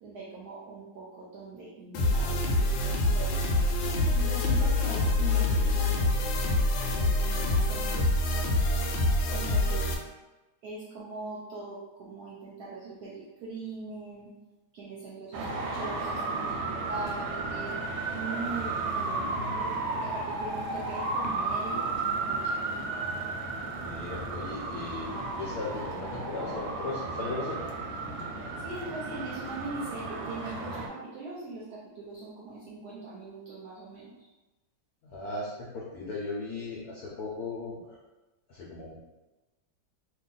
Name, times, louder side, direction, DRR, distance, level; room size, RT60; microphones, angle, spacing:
voice 1, 0.0-3.3 4.1-6.1 6.8-7.9 9.3-9.9 10.6-14.3 14.7-17.7 18.1-21.9 22.2-22.6 28.6-34.3, right 3 dB, 65° right, -5 dB, 1.0 m, -41 dB
sound 1, 1.9-9.9, left 2 dB, 80° left, 1.3 m, -26 dB
Traffic noise roadway noise, 15.3-30.9, right 3 dB, 90° right, 1.4 m, -33 dB
voice 2, 23.8-27.6 35.0-38.0 38.5-39.0, left 3 dB, 65° left, -5 dB, 1.0 m, -37 dB
3.0 x 2.6 x 3.8 m, 1.1 s
omnidirectional pair, 2.1 m